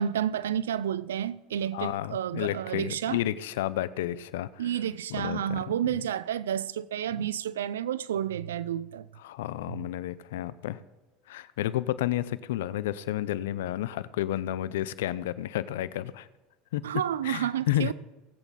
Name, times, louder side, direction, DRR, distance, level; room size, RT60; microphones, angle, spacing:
voice 1, 0.0-3.2 4.6-9.1 9.7-9.9 16.8-17.9, right 10 dB, 85° right, 0.5 m, -30 dB
voice 2, 1.7-4.6 5.1-5.6 5.9-6.0 9.2-10.8 11.3-16.3 16.7-16.8 17.2-17.9, left 13 dB, 75° left, 0.6 m, -31 dB
18.5 x 8.3 x 4.1 m
hypercardioid pair, 85°, 0 cm